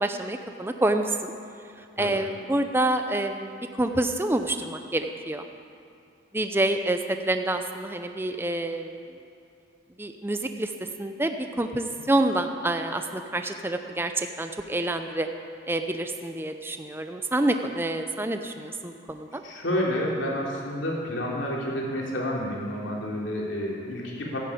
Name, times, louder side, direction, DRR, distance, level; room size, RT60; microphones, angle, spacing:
voice 1, 0.0-1.3 2.0-5.4 6.3-9.0 10.0-10.7 11.0-15.3 15.7-19.4, right 1 dB, 10° right, 6 dB, 0.6 m, -27 dB
voice 2, 19.4-24.4, equal, 70° left, -3 dB, 3.3 m, -29 dB
14.0 x 10.0 x 8.7 m, 2.6 s
head